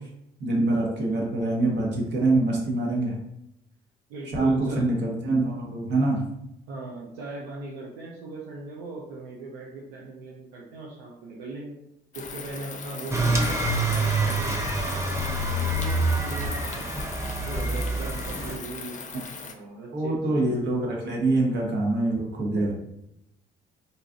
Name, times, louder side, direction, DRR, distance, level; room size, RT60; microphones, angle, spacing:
voice 1, 0.4-3.1 4.3-6.2 19.9-22.8, right 2 dB, 55° right, -1 dB, 1.2 m, -25 dB
voice 2, 4.1-4.9 6.7-11.8 12.1-16.9 17.5-19.0 19.4-20.6 22.5-22.7, right 3 dB, 85° right, -2 dB, 0.5 m, -39 dB
sound 1, 12.1-19.5, left 5 dB, 35° left, 0.5 m, -39 dB
sound 2, 13.1-18.6, right 2 dB, 15° right, 0.7 m, -26 dB
4.0 x 2.3 x 2.5 m, 0.81 s
hypercardioid pair, 60°, 21 cm